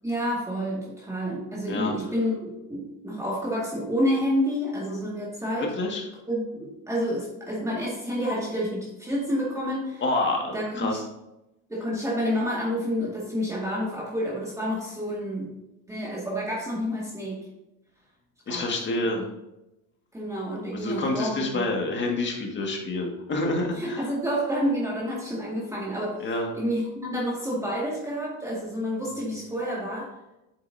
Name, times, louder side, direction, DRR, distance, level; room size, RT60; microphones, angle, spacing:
voice 1, 0.0-5.7 6.3-10.0 10.5-11.0 11.7-15.5 15.9-17.5 18.5-18.7 20.1-21.6 23.7-26.3 26.5-30.1, equal, 5° right, -5 dB, 2.1 m, -29 dB
voice 2, 5.6-6.0 10.0-11.0 18.5-19.2 20.7-24.1 26.2-26.5, left 2 dB, 25° left, 0 dB, 2.0 m, -28 dB
8.6 x 7.7 x 2.8 m, 0.93 s
supercardioid pair, 120°, 41 cm